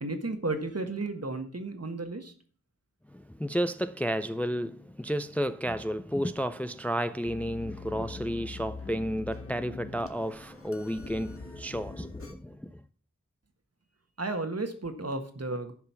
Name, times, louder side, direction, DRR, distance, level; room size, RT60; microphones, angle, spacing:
voice 1, 0.0-2.3 14.2-15.7, right 2 dB, 55° right, 1.5 m, -33 dB
voice 2, 3.1-12.8, equal, 5° left, 0.4 m, -32 dB
sound 1, 7.2-12.3, left 4 dB, 45° left, 1.5 m, -43 dB
10.5 x 5.5 x 5.6 m
wide cardioid pair, 45°, 30 cm